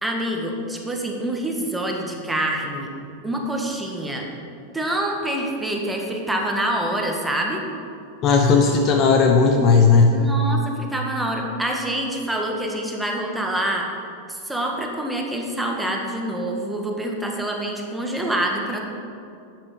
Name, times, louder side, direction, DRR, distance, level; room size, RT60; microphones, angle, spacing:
voice 1, 0.0-2.9 3.2-4.3 4.7-7.6 10.1-13.9 14.3-18.9, right 1 dB, 5° right, 0 dB, 1.7 m, -26 dB
voice 2, 8.2-10.1, left 5 dB, 35° left, 3 dB, 0.9 m, -15 dB
12.0 x 9.1 x 5.2 m, 2.5 s
figure-of-eight pair, 90°, 0 cm